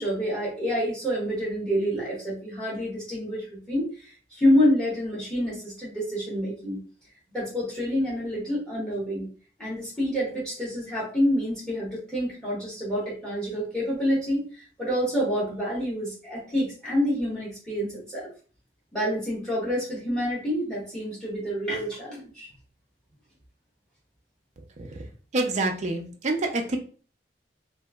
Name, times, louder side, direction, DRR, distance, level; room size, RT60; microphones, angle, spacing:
voice 1, 0.0-6.8 7.3-9.3 9.6-18.3 18.9-22.5, equal, 5° left, -5 dB, 1.2 m, -27 dB
voice 2, 25.3-26.8, right 2 dB, 40° right, 4 dB, 0.4 m, -27 dB
2.9 x 2.5 x 2.2 m, 0.40 s
head